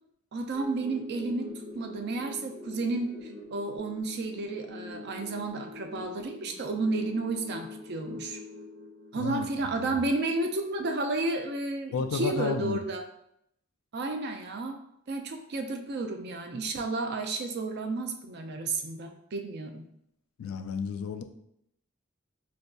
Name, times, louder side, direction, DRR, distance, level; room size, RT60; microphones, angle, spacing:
voice 1, 0.3-8.4 9.1-13.0 13.9-14.8 15.1-19.9, right 3 dB, 50° right, 5 dB, 0.4 m, -32 dB
sound 1, 0.5-9.6, left 2 dB, 75° right, 0.7 m, -44 dB
voice 2, 9.1-9.5 9.7-10.0 11.9-12.8 20.4-21.2, left 5 dB, 80° left, 9 dB, 0.3 m, -32 dB
4.3 x 2.6 x 2.3 m, 0.76 s
head